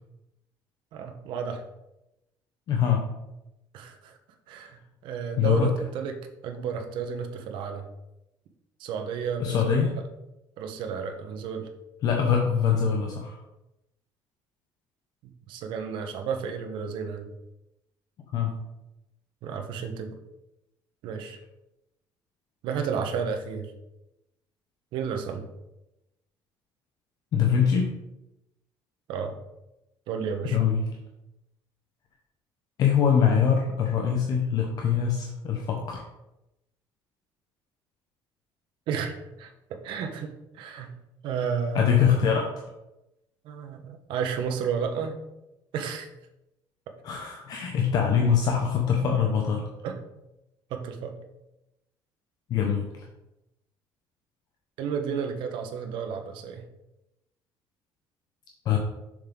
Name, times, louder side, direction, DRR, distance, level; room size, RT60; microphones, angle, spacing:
voice 1, 0.9-1.6 3.7-4.2 4.5-7.9 8.8-9.9 10.6-11.7 15.2-17.3 19.4-20.2 21.0-21.4 22.6-23.7 24.9-25.4 29.1-29.4 30.1-30.6 38.9-40.9 41.2-42.1 43.4-45.2 45.7-46.1 46.9-47.0 49.8-50.0 50.7-51.2 54.8-56.6, right 6 dB, 65° right, 5 dB, 1.1 m, -32 dB
voice 2, 2.7-3.0 5.4-5.7 9.4-9.9 12.0-13.4 18.3-18.5 27.3-27.9 30.4-30.8 32.8-36.1 41.7-42.7 47.0-49.7 52.5-53.1 58.6-58.8, left 7 dB, 50° left, 1 dB, 0.9 m, -23 dB
7.0 x 6.5 x 3.8 m, 0.91 s
cardioid pair, 170°, 9 cm